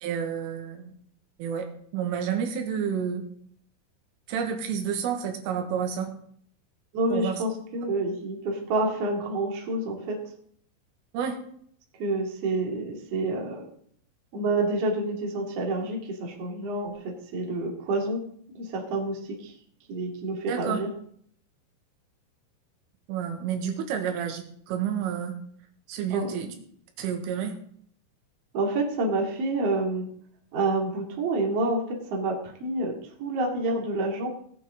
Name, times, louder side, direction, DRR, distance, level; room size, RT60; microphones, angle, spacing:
voice 1, 0.0-1.0 1.4-1.7 1.9-3.2 4.3-6.1 7.1-7.4 11.1-11.4 20.5-20.8 23.1-25.3 25.9-26.5 27.0-27.6, right 8 dB, 85° right, 4 dB, 4.0 m, -30 dB
voice 2, 6.9-10.2 12.0-13.6 14.3-18.2 18.5-19.5 19.9-20.9 26.1-26.6 28.5-30.1 30.5-31.8 32.1-32.9 33.2-34.3, right 2 dB, 45° right, 0 dB, 2.4 m, -28 dB
18.0 x 9.1 x 3.7 m, 0.63 s
omnidirectional pair, 5.8 m